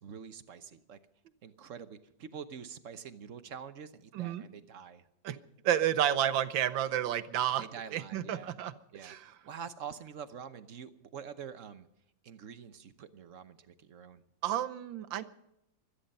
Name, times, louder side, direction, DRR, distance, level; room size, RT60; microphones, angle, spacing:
voice 1, 0.0-1.0 1.4-5.1 7.6-8.6 8.9-11.9 12.2-14.2, right 7 dB, 55° right, 11 dB, 1.0 m, -46 dB
voice 2, 4.1-4.4 5.2-5.4 5.6-7.6 7.9-8.7 9.0-9.4 14.4-15.2, right 10 dB, 75° right, 13 dB, 1.6 m, -30 dB
24.5 x 10.5 x 5.4 m, 0.82 s
omnidirectional pair, 2.1 m